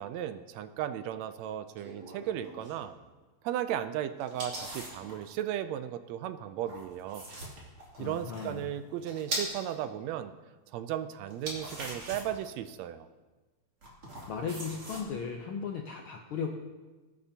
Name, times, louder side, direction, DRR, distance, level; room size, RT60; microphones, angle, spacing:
voice 1, 0.0-3.0 3.4-7.2 8.0-10.3 10.7-13.1, right 11 dB, 80° right, 11 dB, 1.7 m, -35 dB
sound 1, 1.8-2.9 4.2-5.2 6.6-9.7 11.3-12.4 13.8-15.0, right 1 dB, 45° right, 3.4 m, -41 dB
voice 2, 8.0-8.7 14.3-16.5, left 6 dB, 80° left, 2 dB, 1.2 m, -36 dB
21.5 x 9.4 x 2.8 m, 1.3 s
omnidirectional pair, 3.4 m